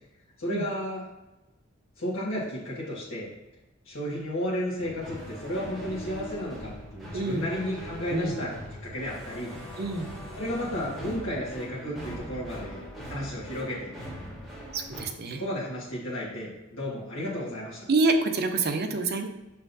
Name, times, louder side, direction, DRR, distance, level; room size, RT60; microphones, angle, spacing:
voice 1, 0.4-1.0 2.0-3.3 3.8-9.5 10.3-12.8 13.1-13.9 15.3-17.8, equal, 70° left, -6 dB, 1.5 m, -33 dB
sound 1, 4.8-15.0, equal, ahead, 1.7 m, -41 dB
voice 2, 7.1-7.5 8.1-8.4 9.8-10.1 14.7-15.4 17.9-19.3, right 3 dB, 50° right, 6 dB, 0.6 m, -27 dB
6.3 x 5.6 x 2.7 m, 1.0 s
head